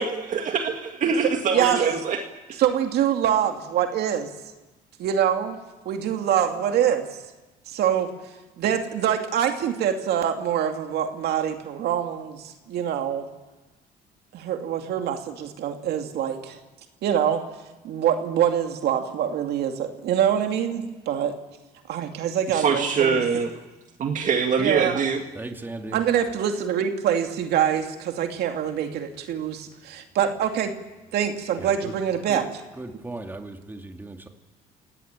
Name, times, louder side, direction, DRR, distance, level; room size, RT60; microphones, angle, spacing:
voice 1, 0.0-2.2 22.5-23.5 24.0-25.2, right 5 dB, 50° right, 4 dB, 2.0 m, -24 dB
voice 2, 2.6-4.3 5.0-5.6 5.9-7.1 7.7-8.1 8.6-13.3 14.3-16.6 17.0-17.4 17.8-21.3 21.9-23.2 24.6-25.0 25.9-30.7 31.1-32.5, right 9 dB, 70° right, 5 dB, 2.5 m, -25 dB
voice 3, 25.3-26.0 31.6-32.0 32.3-32.5 32.7-34.3, right 2 dB, 10° right, 4 dB, 2.4 m, -37 dB
29.5 x 17.5 x 8.9 m, 1.1 s
cardioid pair, 110°, 17 cm